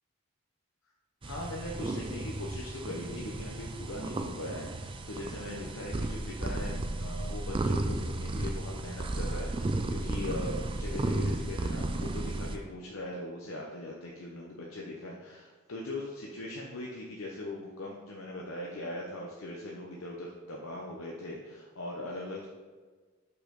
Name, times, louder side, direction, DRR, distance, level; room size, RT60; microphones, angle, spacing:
voice 1, 1.2-22.5, left 1 dB, 70° left, -3 dB, 0.8 m, -40 dB
sound 1, 1.2-12.6, right 2 dB, 25° right, 0.3 m, -34 dB
6.6 x 5.4 x 3.9 m, 1.4 s
head